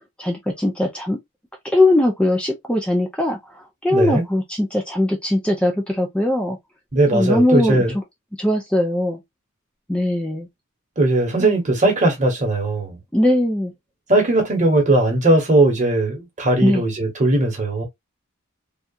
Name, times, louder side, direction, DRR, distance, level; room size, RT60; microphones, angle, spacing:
voice 1, 0.2-1.2 1.7-6.6 7.1-7.8 8.4-9.2 9.9-10.5 11.4-11.5 13.1-13.7 16.6-16.8, left 1 dB, 5° left, 0.4 m, -20 dB
voice 2, 3.9-4.2 6.9-7.9 11.0-13.0 14.1-17.9, right 2 dB, 35° right, 1.0 m, -18 dB
2.8 x 2.3 x 2.3 m
head